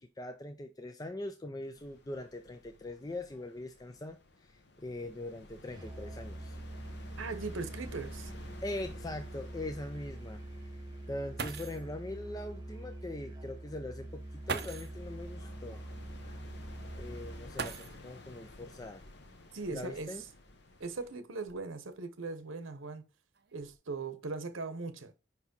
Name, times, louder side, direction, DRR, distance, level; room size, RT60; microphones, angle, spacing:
voice 1, 0.0-6.6 8.6-10.4 11.1-15.9 16.2-16.4 17.0-19.0 19.7-20.2, left 1 dB, 20° left, 0.5 m, -42 dB
sound 1, 1.7-21.1, left 2 dB, 55° left, 1.0 m, -54 dB
Musical instrument, 5.7-17.6, right 1 dB, 20° right, 0.8 m, -45 dB
voice 2, 7.2-8.3 19.5-20.2 20.8-23.1 23.5-25.1, right 3 dB, 85° right, 0.9 m, -39 dB
sound 2, 11.0-11.1 11.4-11.9 13.2-13.3 14.4-15.0 17.5-18.3 19.6-19.7 20.5-21.9 22.6-23.0 23.3-23.7, right 4 dB, 55° right, 0.8 m, -41 dB
5.5 x 4.8 x 5.2 m
head